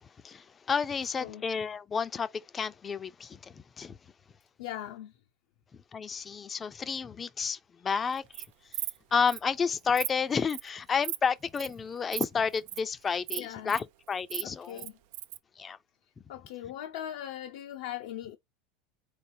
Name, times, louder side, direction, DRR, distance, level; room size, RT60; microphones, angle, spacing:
voice 1, 0.0-4.0 5.9-8.4 9.1-14.8 15.6-15.8, left 6 dB, 25° left, 0.5 m, -31 dB
voice 2, 4.6-5.1 13.4-13.8 14.4-14.9 16.3-18.4, left 11 dB, 75° left, 0.6 m, -40 dB
Insect, 8.1-8.4 8.7-9.0 9.3-9.4 9.7-10.1 10.5-10.7 11.0-11.2 11.5-11.7 12.1-12.2 12.5-12.8 13.3-13.8 14.1-15.4, right 15 dB, 70° right, 0.4 m, -35 dB
4.0 x 3.3 x 2.7 m
supercardioid pair, 110°, 0 cm